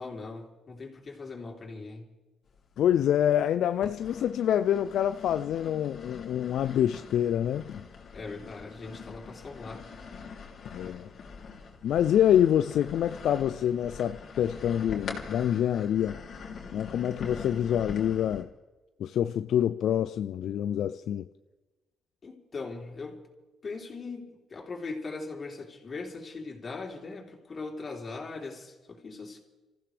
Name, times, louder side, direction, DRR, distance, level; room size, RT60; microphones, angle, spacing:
voice 1, 0.0-2.0 8.1-9.8 22.2-23.2 23.6-29.4, left 3 dB, 40° left, 3.6 m, -40 dB
sound 1, 2.6-3.3 3.8-18.4, left 5 dB, 60° left, 2.9 m, -43 dB
voice 2, 2.8-7.7 10.7-11.1 11.8-16.2 16.7-18.5 19.0-21.2, left 10 dB, 75° left, 0.4 m, -26 dB
27.5 x 15.0 x 3.4 m
cardioid pair, 90°, 0 cm